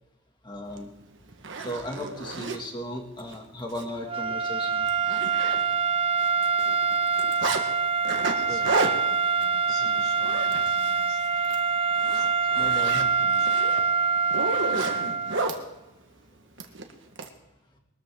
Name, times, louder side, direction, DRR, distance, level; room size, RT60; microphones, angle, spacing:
voice 1, 0.4-0.9 1.6-4.9 8.4-8.7 12.5-13.0, equal, 20° left, 2 dB, 2.3 m, -36 dB
Zipper (clothing), 0.8-0.9 1.3-2.6 3.2-3.3 3.7-3.8 4.2-4.3 4.6-6.0 6.2-7.6 8.0-11.0 11.3-11.6 12.0-15.6 16.6-17.3, right 3 dB, 60° right, 1.5 m, -32 dB
sound 1, 4.0-15.6, right 5 dB, 25° right, 0.5 m, -25 dB
voice 2, 8.4-11.2 12.1-12.5 12.9-13.5 14.5-14.9, left 2 dB, 45° left, 2 dB, 3.5 m, -48 dB
22.0 x 13.0 x 3.8 m, 0.99 s
head